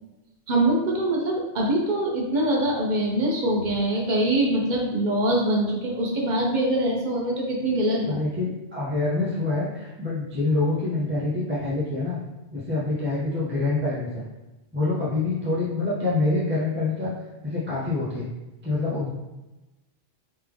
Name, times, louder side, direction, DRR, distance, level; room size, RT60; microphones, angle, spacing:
voice 1, 0.5-8.2, right 1 dB, 45° right, -1 dB, 0.9 m, -23 dB
voice 2, 8.0-12.2 12.5-14.3 14.7-17.1 17.4-18.3 18.6-19.1, left 2 dB, 15° right, -8 dB, 0.5 m, -26 dB
3.3 x 3.2 x 3.4 m, 1.0 s
omnidirectional pair, 1.1 m